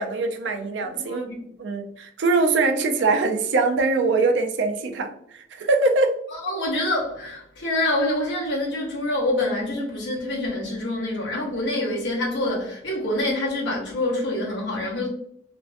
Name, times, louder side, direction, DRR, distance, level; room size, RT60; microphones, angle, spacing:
voice 1, 0.0-1.3 1.6-5.1 5.3-6.1, right 3 dB, 70° right, 0.4 m, -22 dB
voice 2, 0.8-1.5 6.3-15.1, left 1 dB, 65° left, 0.9 m, -26 dB
2.5 x 2.1 x 2.4 m
head